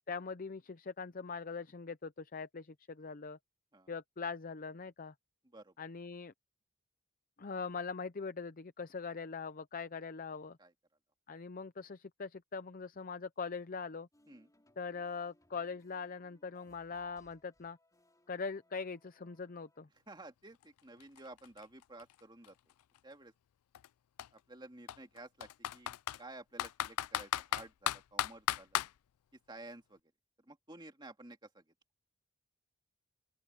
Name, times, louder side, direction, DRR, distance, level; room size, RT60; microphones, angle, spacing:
voice 1, 0.1-3.4 3.9-5.1 5.8-6.3 7.4-10.6 11.3-14.1 14.8-17.8 18.3-19.9, left 5 dB, 40° left, 0.6 m, -42 dB
sound 1, 14.1-19.8, left 1 dB, 15° left, 3.9 m, -70 dB
voice 2, 20.1-22.6 23.0-23.3 24.3-28.8 29.5-30.0 30.4-31.6, right 2 dB, 20° right, 2.3 m, -53 dB
Computer keyboard, 20.6-20.7 21.0-23.0 23.7-23.9 24.2-24.3 24.9-26.2 26.6-28.9, left 12 dB, 90° left, 0.4 m, -35 dB
open air
head